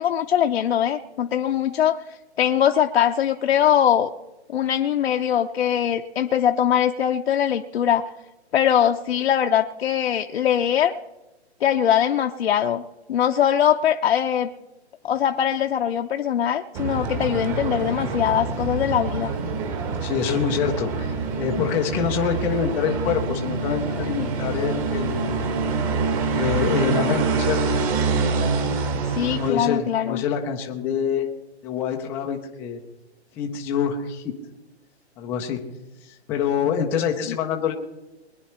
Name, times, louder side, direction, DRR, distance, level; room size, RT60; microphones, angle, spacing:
voice 1, 0.0-2.0 2.4-4.1 4.5-8.0 8.5-10.9 11.6-12.8 13.1-14.5 15.0-19.3 29.0-30.2, left 9 dB, 60° left, 4 dB, 0.8 m, -21 dB
sound 1, 16.7-29.5, right 4 dB, 30° right, 1.5 m, -26 dB
voice 2, 20.0-25.3 26.3-27.8 29.3-31.3 31.6-32.8 33.4-34.3 35.2-35.6 36.0-37.7, left 7 dB, 5° left, 1 dB, 0.4 m, -26 dB
21.5 x 9.7 x 4.3 m, 1.0 s
hypercardioid pair, 150°, 34 cm